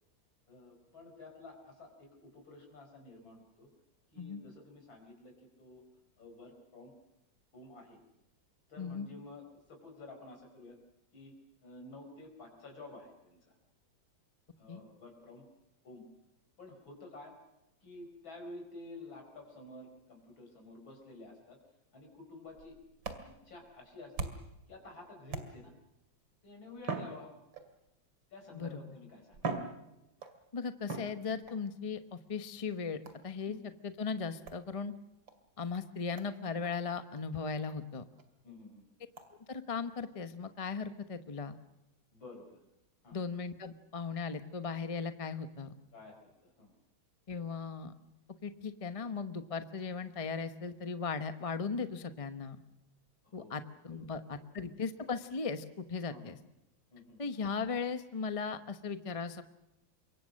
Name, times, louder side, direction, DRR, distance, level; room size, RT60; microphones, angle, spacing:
voice 1, 0.5-3.7 4.1-5.8 6.2-6.9 7.5-8.0 8.7-10.8 11.1-11.3 11.6-13.6 14.6-15.5 15.8-16.0 16.6-17.4 17.8-21.6 21.9-22.8 23.3-24.3 24.7-25.7 26.4-27.3 28.3-29.5 33.4-33.6 38.4-38.9 42.1-42.6 43.0-43.2 45.9-46.8 53.2-53.6 53.9-54.1 54.4-54.5 56.1-56.2 56.9-57.3, left 2 dB, 85° left, 2 dB, 5.5 m, -51 dB
voice 2, 8.8-9.1 14.7-14.8 28.5-28.7 30.5-33.6 33.8-34.9 35.6-38.0 39.5-41.6 43.1-45.7 47.3-47.9 48.4-52.6 53.3-56.4 57.2-59.4, left 5 dB, 25° left, 10 dB, 0.8 m, -37 dB
sound 1, 22.5-24.6 25.3-25.9 26.8-27.9 28.7-28.8 29.3-30.4 30.9-31.6 33.0-33.4 34.5-34.6 35.3-35.4 35.7-35.8 36.2-36.3 36.6-36.7 37.2-37.3 37.7-37.8 38.2-38.3 39.2-39.3, right 4 dB, 75° right, 3.1 m, -41 dB
26.0 x 23.0 x 6.5 m, 0.92 s
omnidirectional pair, 2.1 m